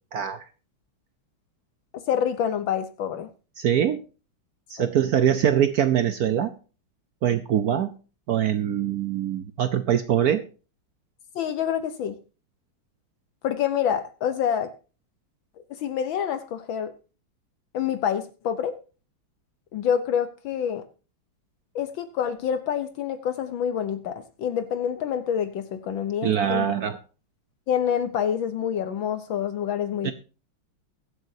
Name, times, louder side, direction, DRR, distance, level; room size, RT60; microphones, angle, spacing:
voice 1, 0.1-0.4 3.6-4.0 4.7-6.5 7.2-7.9 8.3-10.4 26.2-27.0 30.0-30.1, right 9 dB, 70° right, 11 dB, 0.9 m, -23 dB
voice 2, 1.9-3.3 4.8-4.9 11.3-12.2 13.4-14.7 15.7-16.9 17.7-18.8 19.7-20.8 21.7-26.7 27.7-30.1, left 8 dB, 70° left, 11 dB, 1.6 m, -27 dB
22.0 x 7.9 x 2.7 m, 0.34 s
omnidirectional pair, 2.3 m